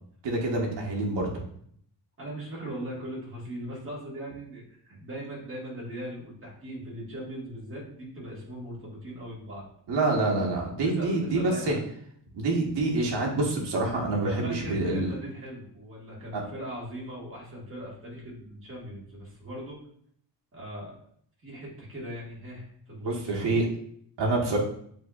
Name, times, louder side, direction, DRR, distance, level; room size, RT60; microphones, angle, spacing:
voice 1, 0.2-1.3 9.9-11.7 12.3-15.1 16.3-16.4 23.0-23.7 24.2-24.6, right 2 dB, 80° right, -2 dB, 1.2 m, -26 dB
voice 2, 2.2-9.6 10.8-11.8 14.2-19.8 20.5-20.9 21.4-23.4, right 1 dB, 30° right, -5 dB, 1.6 m, -39 dB
7.5 x 2.7 x 2.4 m, 0.64 s
wide cardioid pair, 160°, 43 cm